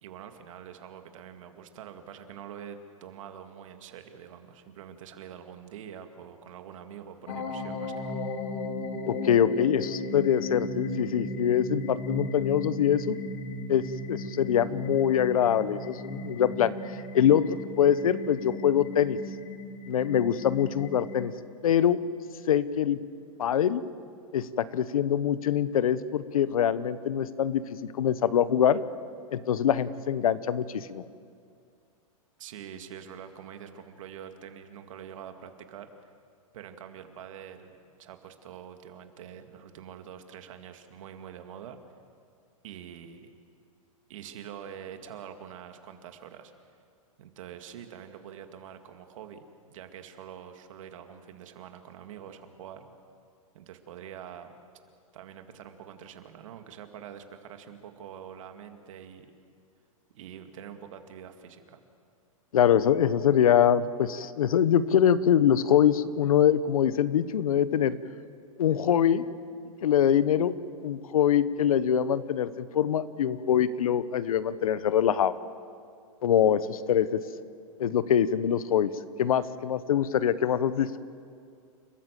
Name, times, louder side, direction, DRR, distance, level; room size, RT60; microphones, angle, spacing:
voice 1, 0.0-8.2 32.4-35.9 36.5-41.8 42.6-43.3 44.1-46.5 47.2-49.4 49.7-52.9 53.5-54.5 55.1-59.3 60.1-61.8, right 9 dB, 65° right, 7 dB, 2.2 m, -45 dB
sound 1, 7.3-21.3, left 1 dB, 65° left, 2.8 m, -36 dB
voice 2, 9.1-13.2 13.7-16.7 17.1-19.2 19.9-21.3 21.6-22.0 22.5-23.0 23.4-23.8 24.3-28.8 29.3-31.0 62.5-68.0 68.6-69.3 69.8-70.5 70.8-75.3 76.2-77.2 77.8-78.9 79.2-81.0, left 9 dB, 80° left, 15 dB, 1.0 m, -24 dB
29.5 x 14.0 x 7.6 m, 2.3 s
hypercardioid pair, 135°, 18 cm